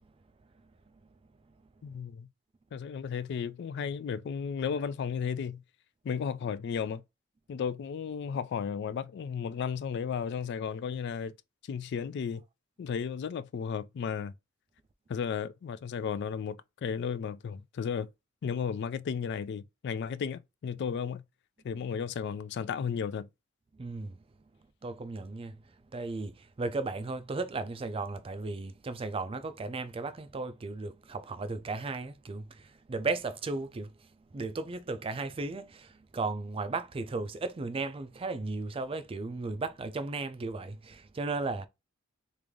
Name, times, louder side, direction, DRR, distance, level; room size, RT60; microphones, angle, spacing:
voice 1, 1.8-2.3 2.7-5.6 6.0-7.0 7.5-11.3 11.6-12.4 12.8-14.3 15.1-18.1 18.4-21.2 21.6-23.3, left 6 dB, 55° left, 0.3 m, -34 dB
voice 2, 23.7-24.2 24.8-25.6 25.9-33.9 34.3-41.7, right 3 dB, 25° right, 0.4 m, -35 dB
3.2 x 2.5 x 3.5 m
head